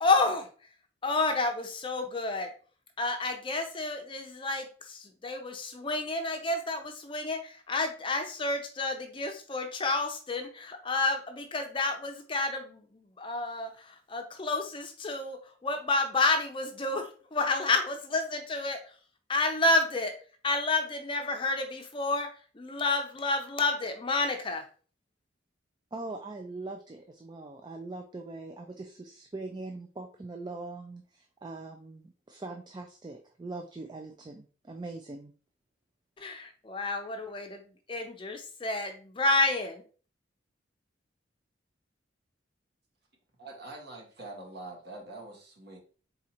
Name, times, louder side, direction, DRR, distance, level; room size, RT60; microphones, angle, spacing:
voice 1, 0.0-0.8 1.0-2.5 3.0-19.0 19.3-20.1 20.4-24.7 36.2-39.8, left 3 dB, 25° left, 4 dB, 0.6 m, -30 dB
voice 2, 25.9-35.3, right 3 dB, 20° right, 5 dB, 0.3 m, -42 dB
voice 3, 43.4-45.8, right 2 dB, 55° right, -2 dB, 1.4 m, -44 dB
4.2 x 3.7 x 2.9 m, 0.40 s
head